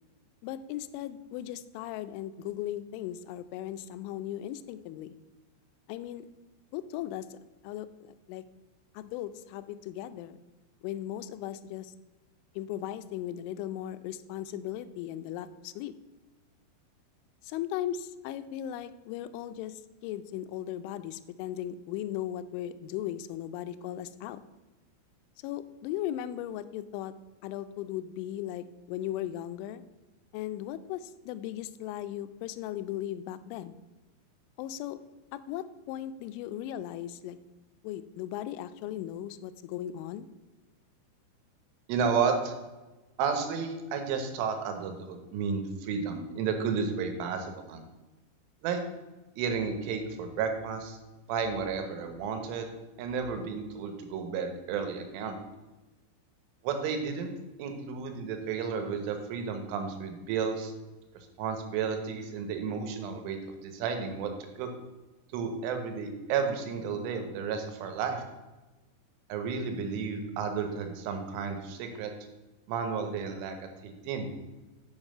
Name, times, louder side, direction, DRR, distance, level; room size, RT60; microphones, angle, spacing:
voice 1, 0.4-5.1 5.9-6.3 6.7-7.4 7.6-8.4 8.9-10.4 10.8-11.9 12.6-15.9 17.4-19.7 20.0-24.4 25.4-27.1 27.4-29.8 30.3-33.8 34.6-35.0 35.3-37.4 37.8-40.3, left 12 dB, 85° left, 12 dB, 3.0 m, -37 dB
voice 2, 41.9-42.5 43.2-47.8 48.6-48.8 49.4-51.0 51.3-52.7 53.0-55.4 56.6-57.3 57.6-60.7 61.4-63.4 63.6-64.3 64.6-64.7 65.3-68.2 69.3-72.1 72.7-74.3, right 6 dB, 90° right, 5 dB, 3.6 m, -32 dB
7.3 x 6.7 x 6.5 m, 1.1 s
omnidirectional pair, 5.4 m